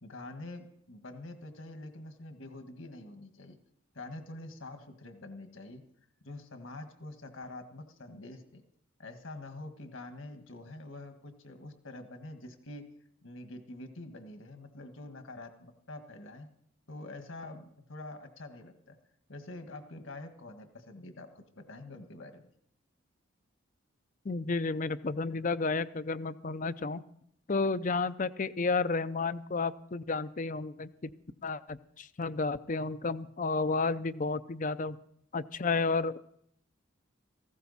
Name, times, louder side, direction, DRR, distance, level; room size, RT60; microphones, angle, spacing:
voice 1, 0.0-3.6 3.9-5.8 6.2-8.6 9.0-12.8 13.2-16.5 16.9-19.0 19.3-22.5, left 2 dB, 70° left, 7 dB, 1.7 m, -46 dB
voice 2, 24.2-27.0 27.5-31.1 31.4-35.0 35.3-36.2, left 4 dB, 40° left, 14 dB, 0.5 m, -32 dB
18.0 x 15.5 x 4.2 m, 0.69 s
head